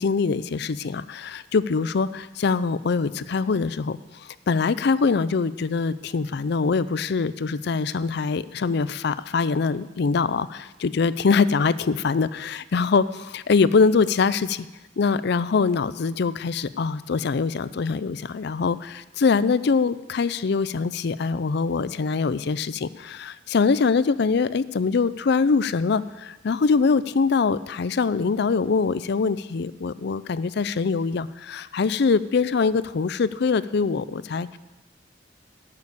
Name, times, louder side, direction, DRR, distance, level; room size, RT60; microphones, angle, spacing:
voice 1, 0.0-4.0 4.5-14.7 15.0-34.6, left 4 dB, 65° left, 16 dB, 0.5 m, -23 dB
12.0 x 6.6 x 8.3 m, 1.1 s
head